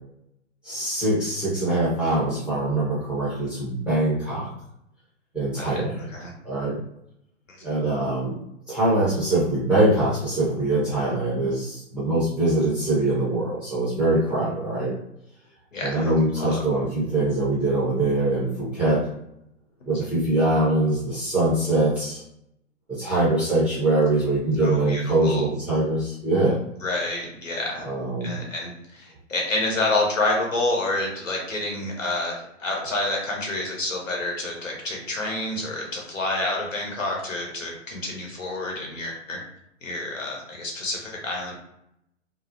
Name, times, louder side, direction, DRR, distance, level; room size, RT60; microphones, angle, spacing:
voice 1, 0.6-4.5 5.3-6.0 6.4-6.8 7.6-8.4 8.7-15.0 15.8-19.1 19.9-22.2 22.9-26.6 27.8-28.4, right 2 dB, 5° right, -9 dB, 0.4 m, -23 dB
voice 2, 15.7-16.1 16.4-16.5 19.9-20.0 24.6-25.5 26.8-27.9 28.2-39.4 39.8-41.5, left 2 dB, 85° left, -1 dB, 1.0 m, -28 dB
2.6 x 2.0 x 2.5 m, 0.78 s
figure-of-eight pair, 115°, 38 cm